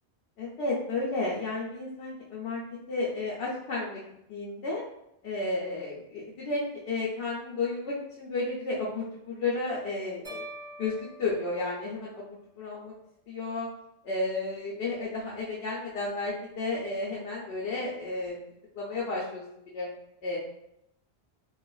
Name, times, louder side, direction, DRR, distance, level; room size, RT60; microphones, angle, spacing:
voice 1, 0.4-2.6 2.9-4.0 4.3-4.8 5.2-10.5 10.8-12.9 13.3-13.7 14.0-18.4 18.7-19.9 20.2-20.4, left 3 dB, 75° left, -5 dB, 0.9 m, -32 dB
sound 1, 10.2-12.5, right 1 dB, 50° right, 1.7 m, -45 dB
3.1 x 2.3 x 2.3 m, 0.80 s
omnidirectional pair, 1.1 m